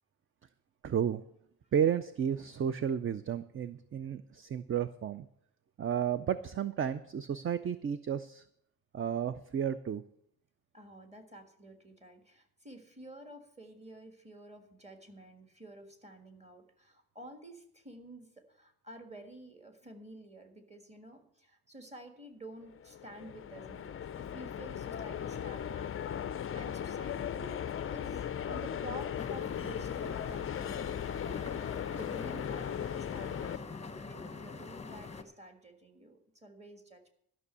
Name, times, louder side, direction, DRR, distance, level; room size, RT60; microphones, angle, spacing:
voice 1, 0.8-1.2 1.7-5.3 5.8-8.4 8.9-10.0, right 8 dB, 35° right, 13 dB, 0.4 m, -32 dB
voice 2, 10.7-27.6 27.9-31.2 31.7-37.1, right 1 dB, 15° right, 5 dB, 1.6 m, -51 dB
sound 1, 22.7-33.6, left 9 dB, 35° left, 0.4 m, -37 dB
sound 2, 29.2-35.2, left 4 dB, 15° left, 0.8 m, -45 dB
12.5 x 6.1 x 8.2 m, 0.71 s
wide cardioid pair, 155°, 39 cm